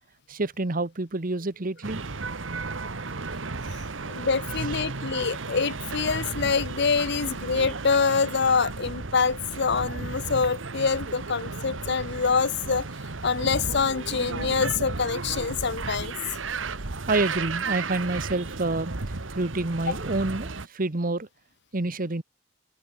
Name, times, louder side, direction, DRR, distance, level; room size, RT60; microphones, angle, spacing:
voice 1, 0.3-2.0 17.1-18.9 19.3-21.3 21.7-22.2, right 2 dB, 45° right, 1.2 m, -28 dB
sound 1, 1.8-20.7, right 3 dB, 80° right, 1.4 m, -34 dB
voice 2, 4.0-12.9 13.2-16.1 19.9-20.0, left 5 dB, 60° left, 0.9 m, -25 dB
open air
head